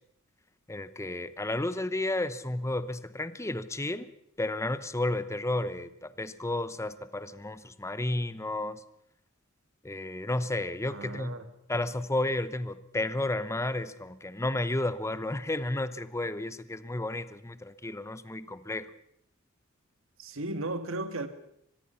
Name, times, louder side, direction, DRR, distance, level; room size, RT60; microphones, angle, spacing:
voice 1, 0.7-4.1 4.4-8.8 9.8-11.3 11.7-18.9, left 2 dB, 15° left, 14 dB, 0.8 m, -32 dB
voice 2, 10.9-11.5 20.2-21.3, right 2 dB, 65° right, 9 dB, 2.0 m, -35 dB
24.5 x 20.5 x 5.7 m, 0.72 s
head